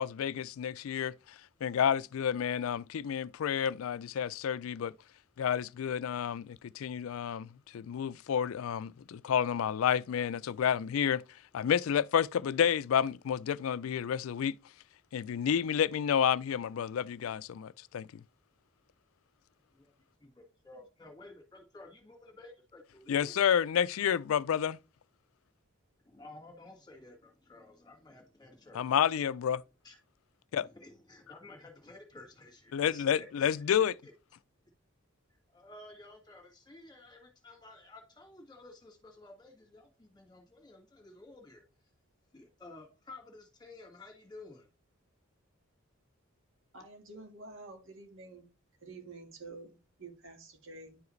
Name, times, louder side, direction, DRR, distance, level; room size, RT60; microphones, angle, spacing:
voice 1, 0.0-4.9 5.4-11.2 11.5-14.5 15.1-18.2 23.1-24.8 28.7-29.6 30.5-30.7 32.7-33.9, left 8 dB, 80° left, 0.4 m, -30 dB
voice 2, 20.2-23.4 26.0-28.9 29.8-30.0 30.6-34.1 35.3-41.6 42.3-44.7, left 2 dB, 20° left, 1.9 m, -53 dB
voice 3, 46.7-48.5 48.8-51.0, right 3 dB, 65° right, 1.7 m, -49 dB
10.0 x 4.8 x 3.2 m
head